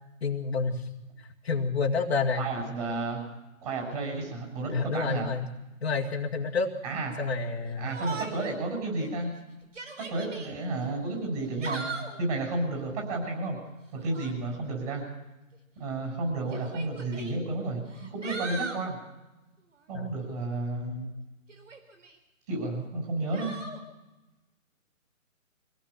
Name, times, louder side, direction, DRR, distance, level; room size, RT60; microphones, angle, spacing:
voice 1, 0.2-0.8 1.4-2.4 4.7-5.5 5.8-6.7 7.2-7.9 19.9-20.1, left 4 dB, 45° left, 0 dB, 2.0 m, -29 dB
voice 2, 2.4-3.2 3.6-5.3 6.8-7.1 7.8-9.3 10.0-13.6 13.9-15.0 15.8-17.8 18.1-19.0 19.9-21.1 22.5-23.5, right 2 dB, 30° right, 0 dB, 7.3 m, -32 dB
Yell, 7.9-8.6 9.0-9.1 9.6-10.5 11.4-12.2 14.0-14.4 15.5-15.6 16.5-17.3 17.9-18.8 21.5-22.2 23.3-23.8, right 4 dB, 60° right, 4.1 m, -39 dB
24.5 x 17.0 x 7.0 m, 1.0 s
figure-of-eight pair, 155°, 42 cm